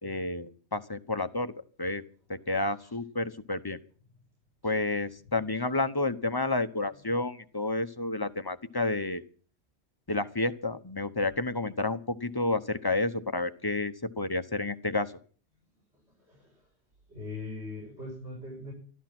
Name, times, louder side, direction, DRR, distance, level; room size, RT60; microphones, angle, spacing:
voice 1, 0.0-1.5 1.8-2.0 2.3-3.8 4.6-9.2 10.1-15.1, left 2 dB, 20° left, 10 dB, 0.9 m, -30 dB
voice 2, 6.9-7.2 15.9-16.7 17.1-18.7, left 2 dB, 70° right, -3 dB, 6.4 m, -42 dB
13.0 x 13.0 x 6.0 m, 0.43 s
omnidirectional pair, 1.2 m